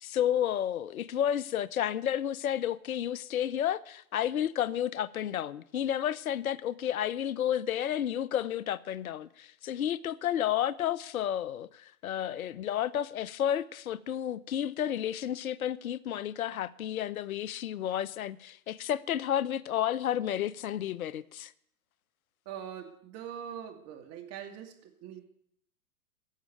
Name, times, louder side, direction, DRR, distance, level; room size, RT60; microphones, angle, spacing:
voice 1, 0.0-21.5, left 10 dB, 75° left, 0.7 m, -31 dB
voice 2, 22.5-25.3, right 9 dB, 35° right, 2.5 m, -43 dB
14.0 x 7.4 x 9.1 m
hypercardioid pair, 110°, 43 cm